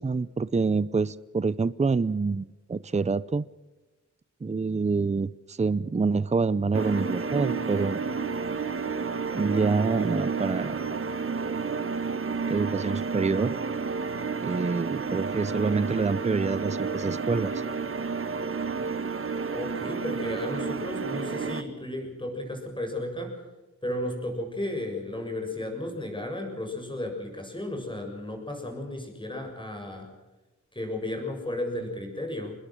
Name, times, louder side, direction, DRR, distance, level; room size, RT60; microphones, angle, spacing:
voice 1, 0.0-3.4 4.4-8.0 9.3-11.0 12.5-13.5 14.4-17.5, right 4 dB, 20° right, 18 dB, 0.6 m, -26 dB
sound 1, 6.7-21.6, right 5 dB, 45° right, 1.4 m, -31 dB
voice 2, 19.5-23.4 23.8-30.1 30.7-32.6, left 1 dB, 15° left, 3 dB, 7.0 m, -34 dB
26.0 x 21.0 x 6.4 m, 1.1 s
wide cardioid pair, 90°, 30 cm